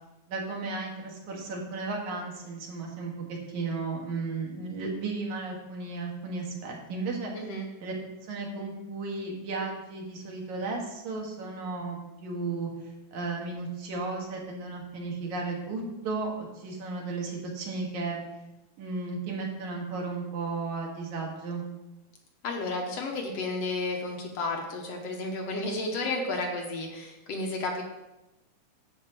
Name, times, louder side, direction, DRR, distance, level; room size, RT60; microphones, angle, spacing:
voice 1, 0.3-3.1 3.5-7.3 7.8-7.9 8.2-12.7 13.1-18.2 18.8-21.7, right 3 dB, 70° right, -1 dB, 3.1 m, -34 dB
voice 2, 7.3-7.7 22.4-27.8, left 2 dB, 65° left, 1 dB, 2.0 m, -32 dB
10.5 x 4.4 x 7.4 m, 0.98 s
omnidirectional pair, 3.5 m